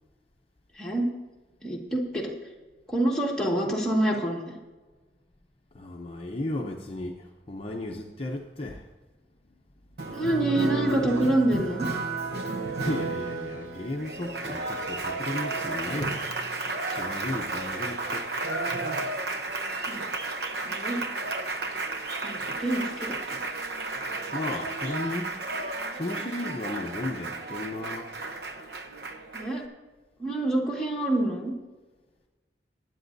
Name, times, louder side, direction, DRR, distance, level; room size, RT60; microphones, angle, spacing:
voice 1, 0.7-1.1 1.6-2.3 2.9-4.6 10.1-11.8 19.9-20.1 20.6-21.0 22.2-23.4 29.3-29.6 30.2-31.5, right 1 dB, 5° left, -3 dB, 1.7 m, -27 dB
voice 2, 5.7-7.2 7.5-8.8 12.8-16.2 16.9-18.3 24.3-25.3 25.9-28.1, left 2 dB, 30° left, 1 dB, 0.7 m, -34 dB
Applause, 10.0-29.6, right 3 dB, 60° right, 0.9 m, -32 dB
20.5 x 9.3 x 2.6 m, 1.3 s
head